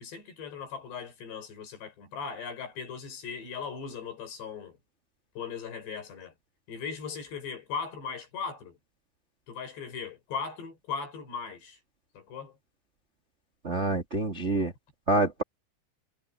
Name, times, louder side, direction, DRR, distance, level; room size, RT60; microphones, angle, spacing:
voice 1, 0.0-4.8 5.4-6.3 6.7-8.8 9.5-11.8 12.1-12.5, left 6 dB, 85° left, 7.6 m, -38 dB
voice 2, 13.6-14.7 15.1-15.4, right 2 dB, 80° right, 0.6 m, -26 dB
omnidirectional pair, 4.8 m